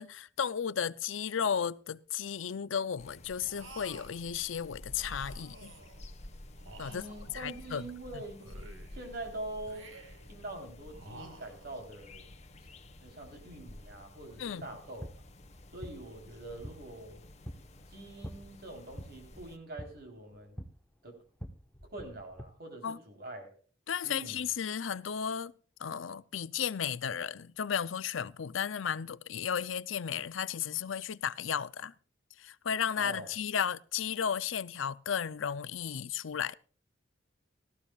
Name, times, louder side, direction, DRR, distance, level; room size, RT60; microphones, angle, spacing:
voice 1, 0.0-5.7 6.8-7.0 7.3-7.8 14.4-14.7 22.8-23.0 23.9-25.5 25.8-31.9 32.4-36.5, left 7 dB, 75° left, 0.5 m, -34 dB
sound 1, 3.0-19.6, left 1 dB, 35° left, 1.3 m, -51 dB
sound 2, 3.4-4.2 4.9-6.0 6.6-7.9 8.3-9.1 9.6-10.3 10.9-11.9, right 2 dB, 85° right, 2.0 m, -52 dB
voice 2, 6.9-8.4 8.9-10.0 10.3-12.3 13.0-15.1 15.7-17.3 17.9-20.6 21.0-21.2 21.9-23.5 24.0-24.4 33.0-33.3, right 2 dB, 55° right, 3.8 m, -44 dB
sound 3, 15.0-22.4, equal, 5° left, 1.2 m, -48 dB
17.5 x 14.0 x 2.4 m
head